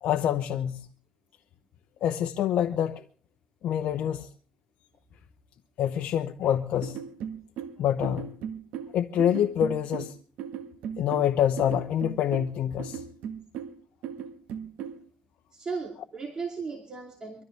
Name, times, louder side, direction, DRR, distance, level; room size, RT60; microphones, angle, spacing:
voice 1, 0.0-0.8 2.0-3.0 3.6-4.3 5.8-7.0 7.8-8.3 8.9-10.1 11.0-13.0, left 10 dB, 70° left, 0.9 m, -26 dB
sound 1, 6.8-15.0, right 8 dB, 80° right, 1.6 m, -38 dB
voice 2, 15.5-17.4, right 5 dB, 35° right, 2.7 m, -36 dB
23.5 x 13.5 x 3.4 m
cardioid pair, 115°, 2 cm